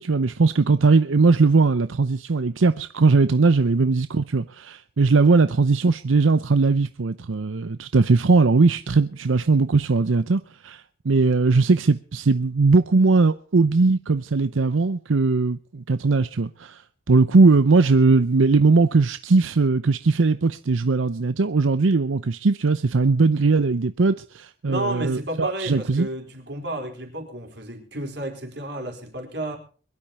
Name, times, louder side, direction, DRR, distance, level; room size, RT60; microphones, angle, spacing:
voice 1, 0.0-16.8 17.1-26.1, right 3 dB, 90° right, 0.7 m, -19 dB
voice 2, 24.6-29.6, right 1 dB, 60° right, 4.7 m, -31 dB
22.5 x 12.0 x 4.2 m
head